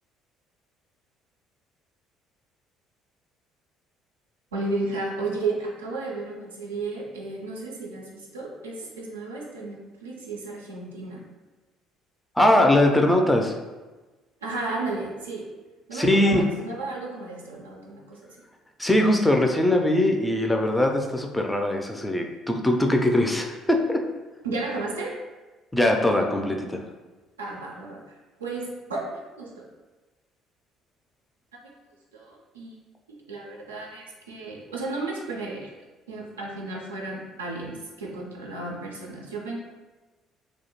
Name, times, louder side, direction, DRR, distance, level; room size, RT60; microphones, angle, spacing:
voice 1, 4.5-11.3 14.4-15.5 15.9-18.4 24.4-25.2 27.4-29.7 31.5-31.7 32.1-32.8 33.1-35.7 36.1-39.6, right 3 dB, 90° right, -2 dB, 0.3 m, -33 dB
voice 2, 12.4-13.6 15.9-16.4 18.8-24.0 25.7-26.8, left 1 dB, 10° left, 2 dB, 0.3 m, -21 dB
2.3 x 2.0 x 2.9 m, 1.2 s
hypercardioid pair, 55°, 0 cm